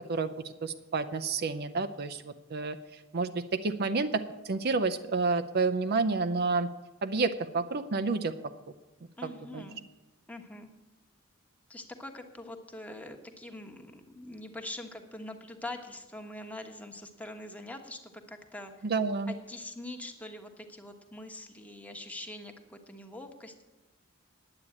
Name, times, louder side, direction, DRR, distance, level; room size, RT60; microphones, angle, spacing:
voice 1, 0.1-6.7 7.0-8.3 9.2-9.6 18.8-19.3, right 4 dB, 50° right, 9 dB, 0.6 m, -30 dB
voice 2, 9.2-9.8 10.3-10.7 11.7-18.8 19.3-23.6, left 1 dB, 5° left, 3 dB, 1.1 m, -43 dB
9.8 x 8.5 x 8.7 m, 1.1 s
head